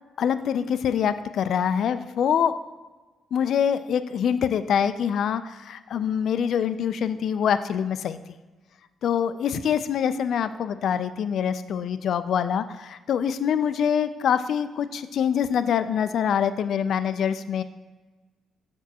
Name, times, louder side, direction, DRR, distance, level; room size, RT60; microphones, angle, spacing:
voice 1, 0.2-2.6 3.3-8.2 9.0-17.6, left 8 dB, 65° left, 12 dB, 0.3 m, -25 dB
6.2 x 6.0 x 2.8 m, 1.3 s
cardioid pair, 90°, 0 cm